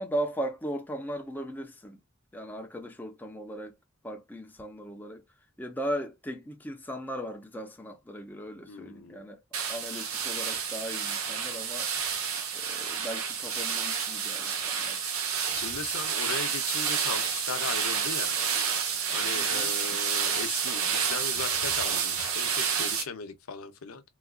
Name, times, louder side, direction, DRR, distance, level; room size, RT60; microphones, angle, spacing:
voice 1, 0.0-2.0 2.3-3.8 4.0-5.2 5.6-9.4 9.7-11.9 12.5-15.0 19.4-19.7, equal, 10° left, 0.6 m, -37 dB
voice 2, 8.7-9.3 15.5-18.4 19.1-24.0, left 5 dB, 80° left, 0.7 m, -38 dB
sound 1, 9.5-23.0, right 7 dB, 85° right, 0.9 m, -29 dB
4.0 x 2.4 x 2.3 m
head